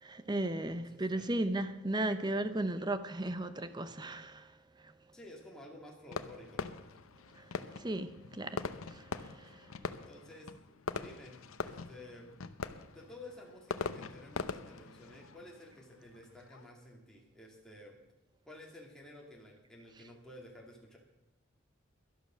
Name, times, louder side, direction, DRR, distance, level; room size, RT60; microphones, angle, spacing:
voice 1, 0.0-4.5 4.8-4.9 7.3-7.5 7.7-8.6 8.9-9.7, right 1 dB, 20° right, 0.7 m, -35 dB
voice 2, 0.6-1.3 5.1-6.7 10.0-10.5 10.9-12.3 12.9-18.0 18.5-21.0, left 1 dB, 5° left, 2.4 m, -52 dB
Fireworks, 6.1-16.7, left 4 dB, 85° left, 0.8 m, -43 dB
12.0 x 11.5 x 6.2 m
head